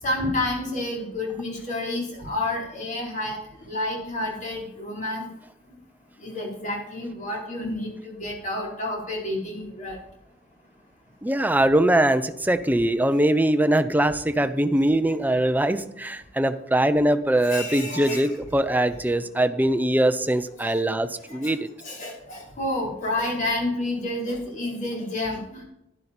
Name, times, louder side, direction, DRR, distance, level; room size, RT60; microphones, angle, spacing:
voice 1, 0.0-5.3 6.2-10.0 14.3-14.4 17.4-18.4 20.6-20.8 21.3-21.5 21.8-25.6, left 1 dB, 40° left, -2 dB, 3.9 m, -30 dB
voice 2, 11.2-21.7, right 1 dB, 10° right, 11 dB, 0.6 m, -22 dB
11.5 x 11.0 x 4.3 m, 0.82 s
head